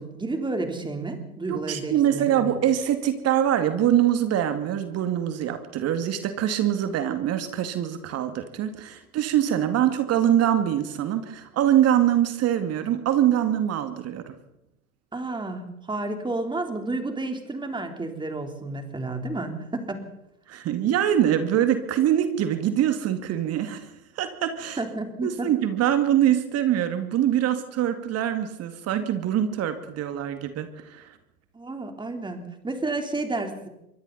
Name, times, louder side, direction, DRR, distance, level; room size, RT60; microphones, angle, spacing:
voice 1, 0.0-2.5 15.1-20.1 24.8-25.5 31.5-33.7, right 2 dB, 10° right, 5 dB, 3.7 m, -31 dB
voice 2, 1.5-14.3 20.5-23.9 24.2-24.8 25.2-31.1, right 11 dB, 35° right, 9 dB, 2.3 m, -24 dB
27.0 x 24.5 x 4.2 m, 0.85 s
figure-of-eight pair, 90°, 43 cm